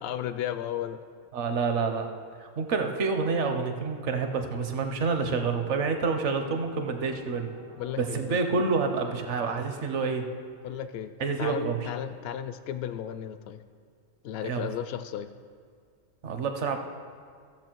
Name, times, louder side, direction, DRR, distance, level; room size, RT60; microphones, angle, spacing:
voice 1, 0.0-1.0 7.8-8.4 10.6-11.1 11.4-13.6 14.2-15.3, left 10 dB, 65° left, 11 dB, 0.6 m, -34 dB
voice 2, 1.3-2.1 2.4-7.5 8.0-10.3 11.2-11.9 14.4-14.7 16.2-16.8, right 4 dB, 60° right, 6 dB, 1.1 m, -28 dB
sound 1, 3.2-10.0, right 2 dB, 90° right, 2.2 m, -52 dB
15.0 x 6.9 x 4.5 m, 2.1 s
omnidirectional pair, 1.4 m